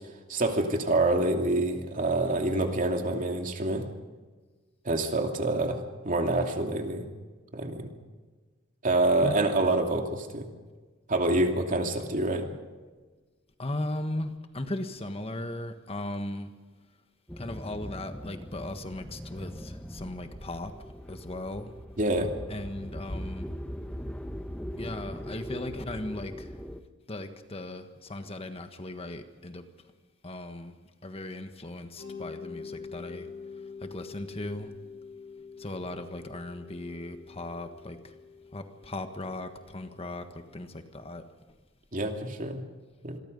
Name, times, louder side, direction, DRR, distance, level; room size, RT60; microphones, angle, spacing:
voice 1, 0.3-3.8 4.8-7.1 7.5-7.9 8.8-10.5 11.1-12.5 22.0-22.3 41.9-42.6 43.0-43.2, right 2 dB, 40° right, 3 dB, 2.7 m, -27 dB
voice 2, 13.6-16.5 17.4-20.7 21.1-21.7 22.5-23.5 24.8-26.5 27.1-29.7 30.2-30.7 31.0-33.3 33.8-34.7 35.6-38.1 38.5-41.2, left 1 dB, 30° left, 7 dB, 1.5 m, -37 dB
sound 1, 17.3-26.8, equal, 5° left, 1.1 m, -40 dB
Mallet percussion, 32.0-40.7, left 5 dB, 60° left, 4.6 m, -46 dB
27.0 x 22.0 x 5.4 m, 1.3 s
head